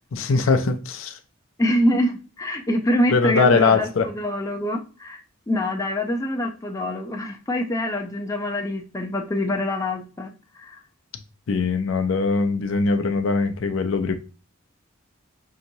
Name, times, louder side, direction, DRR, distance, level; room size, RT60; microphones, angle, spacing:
voice 1, 0.1-1.2 3.1-4.1 11.5-14.2, left 4 dB, 70° left, 0.5 m, -21 dB
voice 2, 1.6-5.2 5.5-10.8, left 1 dB, 15° left, 0.5 m, -25 dB
5.5 x 2.9 x 2.6 m
head